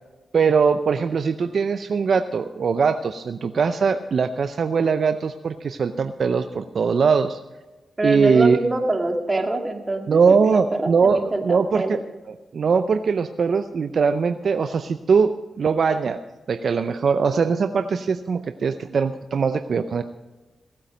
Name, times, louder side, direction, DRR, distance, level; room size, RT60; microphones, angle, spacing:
voice 1, 0.3-7.4 8.0-8.6 10.1-12.0 12.5-16.2 16.5-20.0, right 5 dB, 65° right, 9 dB, 0.5 m, -21 dB
voice 2, 8.0-12.0, right 2 dB, 30° right, 3 dB, 2.3 m, -25 dB
17.5 x 8.6 x 5.2 m, 1.2 s
cardioid pair, 55°, 0 cm